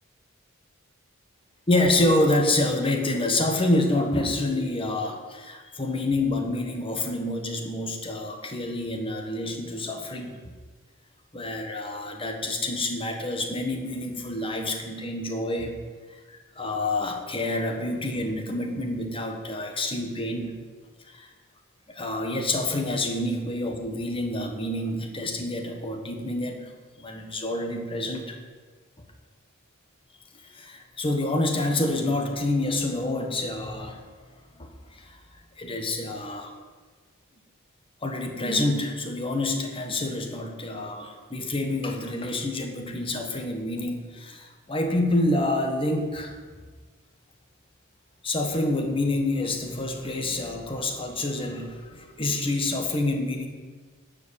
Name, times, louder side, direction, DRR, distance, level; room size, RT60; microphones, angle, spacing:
voice 1, 1.7-10.4 11.3-15.7 16.3-20.5 21.1-21.3 21.9-26.7 27.0-28.4 30.4-34.0 34.6-35.2 35.6-36.5 38.0-46.4 48.2-53.5, left 2 dB, 25° left, 4 dB, 1.4 m, -27 dB
11.5 x 5.2 x 8.7 m, 1.5 s
head